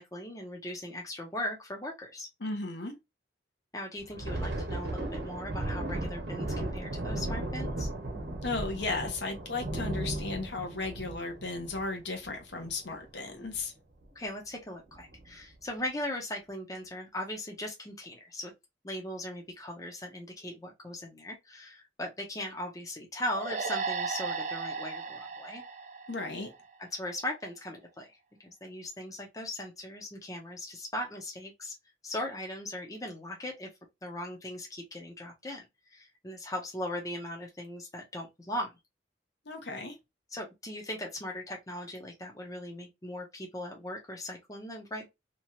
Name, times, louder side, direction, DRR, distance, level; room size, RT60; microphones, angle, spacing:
voice 1, 0.0-2.3 3.7-7.9 14.1-18.5 18.8-25.6 26.8-28.1 28.4-31.7 32.0-33.7 34.0-38.7 40.3-45.1, left 1 dB, 20° left, 0.6 m, -39 dB
voice 2, 2.4-2.9 8.4-13.7 26.1-26.5 39.5-40.0, left 3 dB, 65° left, 0.8 m, -35 dB
Thunder, 4.0-13.1 13.4-13.6 14.0-14.3 14.9-15.3, right 1 dB, 65° right, 0.9 m, -36 dB
sound 1, 23.4-26.8, right 5 dB, 40° right, 0.3 m, -35 dB
2.9 x 2.3 x 2.8 m
head